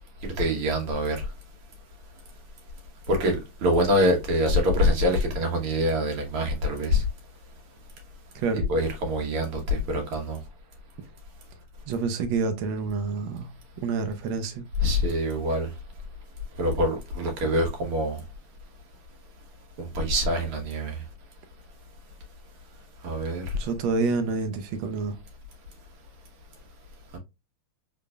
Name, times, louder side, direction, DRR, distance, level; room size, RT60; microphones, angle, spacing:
voice 1, 0.4-1.2 3.1-7.0 8.5-10.4 14.8-15.7 16.6-18.2 19.8-20.9 23.0-23.4 27.1-27.2, left 1 dB, 90° right, 2.1 m, -25 dB
voice 2, 11.9-13.5 13.8-14.6 23.5-25.1, right 4 dB, 75° right, 1.4 m, -28 dB
3.9 x 3.8 x 2.2 m
omnidirectional pair, 2.3 m